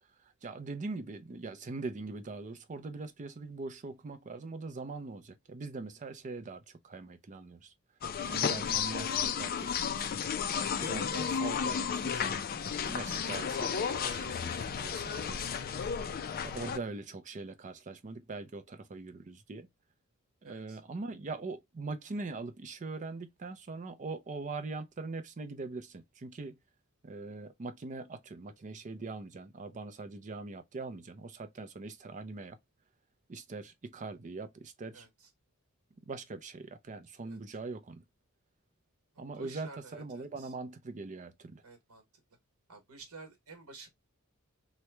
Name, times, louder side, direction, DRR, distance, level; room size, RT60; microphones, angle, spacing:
voice 1, 0.4-7.7 8.3-10.2 10.8-15.7 16.4-19.7 20.4-26.6 27.0-32.6 33.3-35.1 36.0-38.0 39.2-41.6, right 3 dB, 35° right, 0.5 m, -42 dB
sound 1, 8.0-16.8, left 7 dB, 45° left, 0.4 m, -33 dB
voice 2, 11.0-11.3 20.4-20.8 34.9-35.3 37.3-37.4 39.1-40.5 41.6-42.0 42.7-43.9, right 3 dB, 90° right, 1.1 m, -52 dB
3.0 x 2.2 x 3.2 m
head